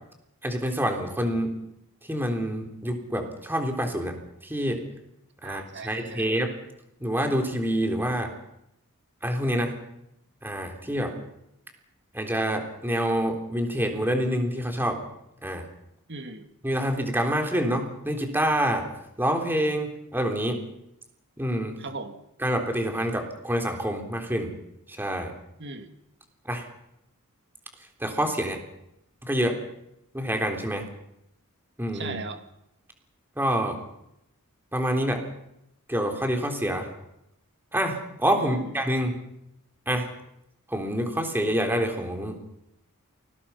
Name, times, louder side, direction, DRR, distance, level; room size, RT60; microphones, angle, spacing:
voice 1, 0.4-1.6 2.1-4.8 5.4-6.5 7.0-8.3 9.2-9.7 10.4-11.1 12.1-15.0 15.4-15.7 16.6-18.9 19.2-20.6 21.4-21.7 22.4-24.5 24.9-25.3 26.5-26.6 28.0-28.6 29.2-29.6 30.1-30.9 31.8-32.2 33.4-33.8 34.7-35.2 35.9-36.9 37.7-39.2 39.9-40.1 40.7-42.4, equal, 10° right, 4 dB, 3.5 m, -27 dB
voice 2, 5.4-6.3 10.8-11.3 16.1-16.5 21.8-22.2 25.6-25.9 31.9-32.4 38.3-38.7, right 3 dB, 50° right, 7 dB, 2.3 m, -39 dB
29.0 x 20.0 x 5.8 m, 0.81 s
head